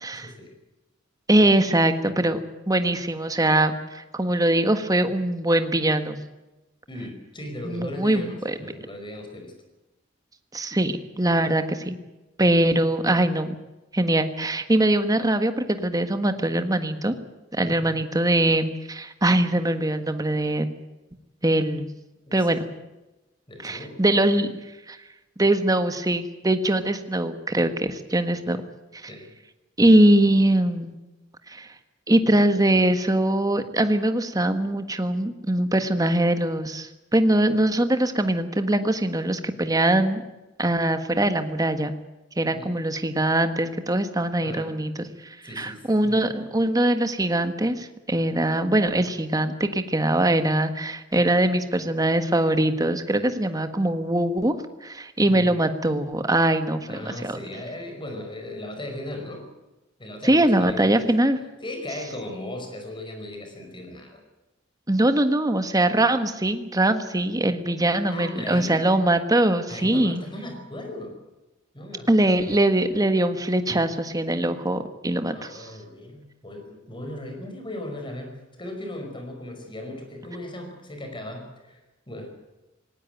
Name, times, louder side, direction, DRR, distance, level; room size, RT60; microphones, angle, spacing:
voice 1, 0.1-0.5 6.9-9.5 17.7-18.0 22.3-22.7 23.5-24.0 28.4-28.6 29.0-29.3 42.5-42.7 44.4-44.7 45.4-46.2 53.5-53.6 55.2-55.5 56.9-59.5 60.0-61.1 61.6-64.2 67.7-67.8 68.1-68.9 69.7-71.2 71.7-72.5 75.3-81.8 82.1-82.4, left 1 dB, 25° left, 4 dB, 5.2 m, -37 dB
voice 2, 1.3-2.4 2.7-6.2 7.6-8.6 10.5-11.9 12.4-13.6 13.9-17.1 17.5-20.7 21.4-21.9 22.3-22.6 23.6-24.5 24.9-25.0 25.4-28.6 29.8-30.9 31.5-31.7 32.1-40.2 40.6-41.9 42.4-44.9 45.6-54.5 54.8-57.4 60.2-61.4 64.9-70.2 72.1-75.7, right 1 dB, 20° right, 9 dB, 1.5 m, -22 dB
18.5 x 18.0 x 9.2 m, 1.0 s
head